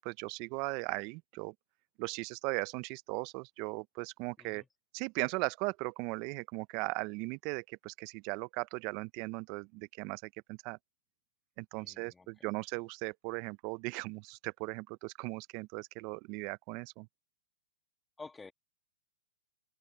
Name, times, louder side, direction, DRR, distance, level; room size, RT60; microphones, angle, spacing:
voice 1, 0.0-1.5 2.0-4.6 4.9-10.8 11.6-17.1, right 26 dB, 35° right, 0.5 m, -38 dB
voice 2, 11.7-12.3 18.2-18.5, left 3 dB, 5° left, 2.2 m, -50 dB
hypercardioid pair, 150°, 0 cm